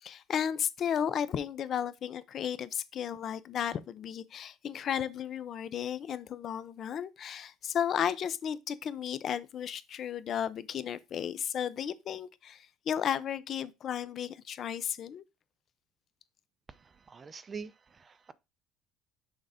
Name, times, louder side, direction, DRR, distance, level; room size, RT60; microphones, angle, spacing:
voice 1, 0.0-15.2, left 9 dB, 40° left, 0.5 m, -34 dB
voice 2, 16.7-18.3, right 5 dB, 25° right, 0.4 m, -45 dB
6.4 x 3.6 x 5.0 m
cardioid pair, 145°, 0 cm